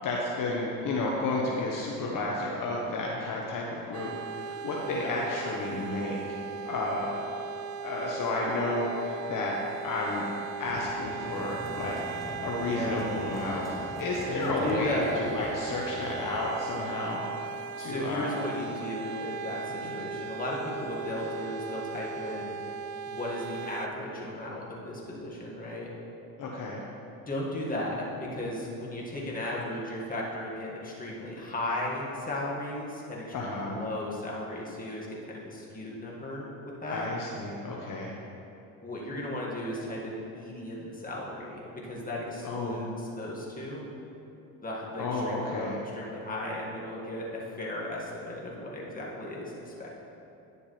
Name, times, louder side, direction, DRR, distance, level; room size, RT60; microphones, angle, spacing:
voice 1, 0.0-6.2 6.6-7.2 7.8-9.6 9.8-10.2 10.6-13.7 14.0-17.2 17.8-18.3 19.8-19.9 26.4-26.8 33.3-33.8 36.9-38.1 42.4-42.9 45.0-45.8, left 2 dB, 50° left, -3 dB, 1.1 m, -32 dB
sound 1, 3.9-23.9, right 5 dB, 60° right, 0.6 m, -38 dB
sound 2, 10.7-16.3, left 1 dB, ahead, 1.1 m, -43 dB
voice 2, 12.6-13.0 14.2-15.2 17.8-22.6 23.1-25.9 27.3-36.5 36.8-37.1 38.8-43.9 44.6-50.0, left 1 dB, 20° left, -4 dB, 1.9 m, -35 dB
10.0 x 7.0 x 3.3 m, 2.9 s
supercardioid pair, 85°, 40 cm